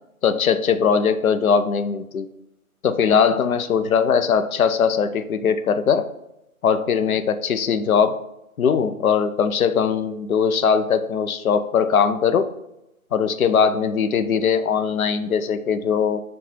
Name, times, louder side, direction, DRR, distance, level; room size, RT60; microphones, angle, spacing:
voice 1, 0.2-2.3 2.8-6.1 6.6-8.2 8.6-12.5 13.1-16.2, left 6 dB, 70° left, 11 dB, 0.5 m, -20 dB
6.0 x 2.2 x 3.1 m, 0.88 s
figure-of-eight pair, 155°, 44 cm